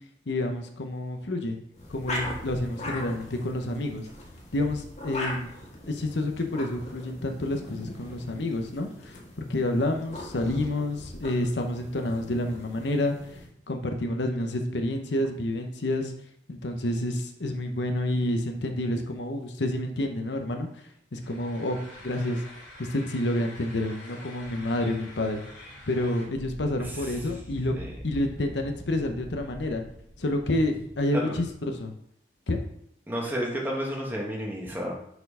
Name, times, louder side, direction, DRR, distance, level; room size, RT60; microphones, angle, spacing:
voice 1, 0.3-1.6 1.9-4.1 4.5-5.5 5.9-13.1 13.7-16.1 16.5-20.7 21.1-22.4 22.8-25.4 25.9-27.7 28.0-29.8 30.2-31.9 32.5-32.6, left 1 dB, 70° left, 5 dB, 0.9 m, -29 dB
sound 1, 1.7-13.5, left 1 dB, 35° left, 1.6 m, -40 dB
sound 2, 21.2-26.3, left 2 dB, 85° left, 2.7 m, -47 dB
sound 3, 24.4-31.5, equal, 90° right, 1.5 m, -45 dB
voice 2, 26.8-27.3 27.7-27.9 31.1-31.4 33.1-34.9, equal, 10° right, -2 dB, 1.5 m, -32 dB
6.7 x 4.4 x 5.5 m, 0.72 s
head